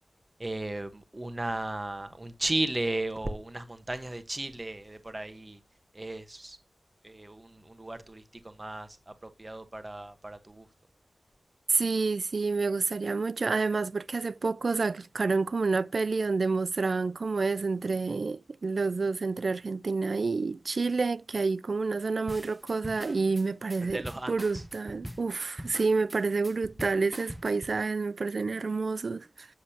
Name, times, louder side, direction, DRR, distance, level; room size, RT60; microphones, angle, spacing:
voice 1, 0.4-5.6 5.9-6.6 7.0-10.7 23.8-24.6, right 2 dB, 25° right, 1.2 m, -35 dB
voice 2, 11.7-29.5, right 4 dB, 60° right, 0.3 m, -29 dB
sound 1, 22.3-27.8, equal, 5° right, 0.7 m, -43 dB
8.2 x 7.3 x 2.8 m
wide cardioid pair, 90°, 0 cm